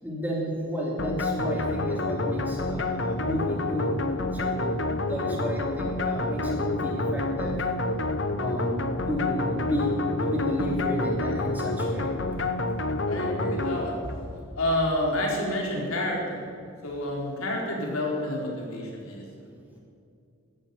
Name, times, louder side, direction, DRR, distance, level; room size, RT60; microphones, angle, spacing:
voice 1, 0.0-4.0 4.3-7.6 8.4-8.8 9.1-9.9 10.2-12.1, equal, 10° right, -3 dB, 2.9 m, -32 dB
sound 1, 1.0-14.3, left 2 dB, 55° left, 1.0 m, -28 dB
voice 2, 13.1-14.2 14.6-16.4 16.8-19.3 19.7-19.8, left 1 dB, 85° left, -2 dB, 4.1 m, -29 dB
14.0 x 11.5 x 8.5 m, 2.5 s
head